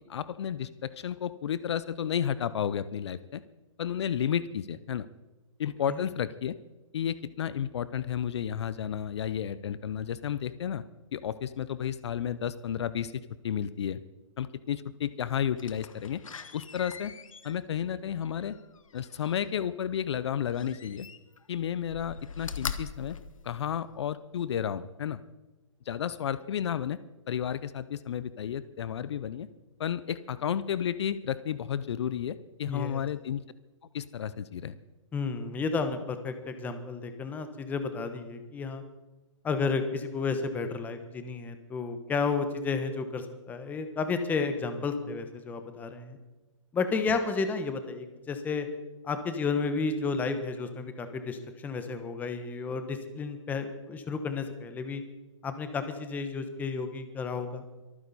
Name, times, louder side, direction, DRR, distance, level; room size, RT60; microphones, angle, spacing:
voice 1, 0.1-3.4 3.8-5.1 5.6-6.6 6.9-10.8 11.1-14.0 14.4-16.2 16.5-17.1 17.4-18.6 18.9-21.1 21.5-23.2 23.4-25.2 25.9-27.0 27.3-29.5 29.8-33.4 33.9-34.8, left 9 dB, 55° left, 15 dB, 0.6 m, -32 dB
Slam, 15.6-19.4 20.5-21.5 21.8-24.1 24.6-24.7, left 6 dB, 85° left, 1.2 m, -42 dB
voice 2, 32.6-33.0 35.1-38.8 39.4-46.2 46.7-48.7 49.0-55.0 55.4-57.6, left 4 dB, 10° left, 9 dB, 1.0 m, -32 dB
24.5 x 9.6 x 4.1 m, 1.1 s
hypercardioid pair, 150°, 17 cm